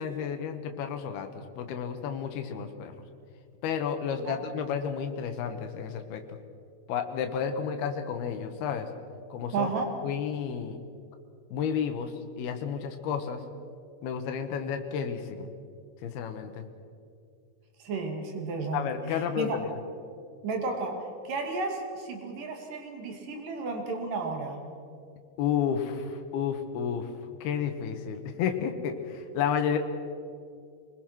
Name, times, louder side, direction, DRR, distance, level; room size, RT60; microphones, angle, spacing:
voice 1, 0.0-3.0 3.6-6.4 6.9-8.9 9.3-9.7 10.0-10.8 11.5-13.4 14.0-15.5 16.0-16.6 18.7-19.7 25.4-27.1 27.4-29.8, left 7 dB, 90° left, 6 dB, 3.1 m, -31 dB
voice 2, 9.5-9.9 17.8-19.6 20.4-24.6, right 4 dB, 60° right, 3 dB, 4.0 m, -33 dB
25.5 x 20.5 x 6.1 m, 2.4 s
omnidirectional pair, 4.4 m